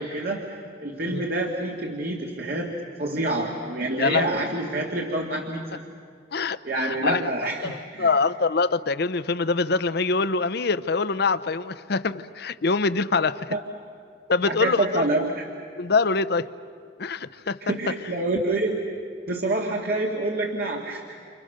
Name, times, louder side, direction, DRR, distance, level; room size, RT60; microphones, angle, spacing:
voice 1, 0.0-5.9 6.6-8.1 13.5-13.6 14.4-15.4 17.6-18.8 19.3-21.1, right 2 dB, 60° right, 1 dB, 2.0 m, -27 dB
voice 2, 4.0-4.3 6.3-7.3 7.6-13.5 14.3-15.0 15.8-16.5 17.0-17.6, left 4 dB, 65° left, 14 dB, 0.8 m, -24 dB
29.0 x 28.5 x 6.6 m, 2.2 s
head